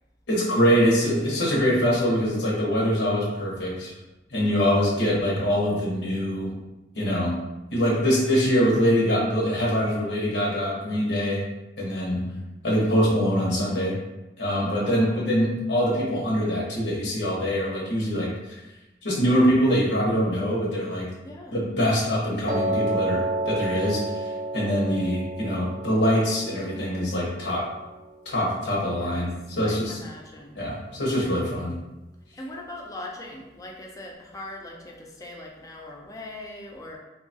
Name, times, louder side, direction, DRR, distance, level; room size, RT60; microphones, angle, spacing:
voice 1, 0.3-3.9 4.3-6.5 7.0-7.4 7.7-11.4 11.8-14.0 14.4-18.6 19.0-21.1 21.5-27.7 28.3-30.0 30.5-31.8, equal, 90° left, -4 dB, 0.9 m, -24 dB
voice 2, 4.5-4.9 12.3-12.4 14.6-15.3 21.2-21.6 28.9-29.3 29.6-30.6 32.4-37.0, left 1 dB, 20° left, 0 dB, 0.4 m, -41 dB
Piano, 22.5-28.6, right 2 dB, 50° right, 0.5 m, -31 dB
2.7 x 2.2 x 2.6 m, 1.0 s
head